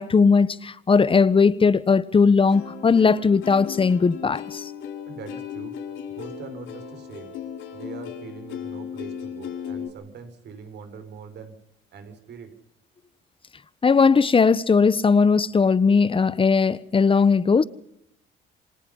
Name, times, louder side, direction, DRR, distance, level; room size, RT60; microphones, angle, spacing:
voice 1, 0.0-4.7 13.8-17.6, left 5 dB, 25° left, 1.3 m, -18 dB
Plucked string instrument, 2.5-9.9, left 8 dB, 80° left, 4.6 m, -36 dB
voice 2, 5.1-5.8 6.1-7.3 7.7-11.6 11.9-12.5, right 5 dB, 60° right, 5.8 m, -42 dB
28.5 x 25.5 x 5.7 m
cardioid pair, 100°, 19 cm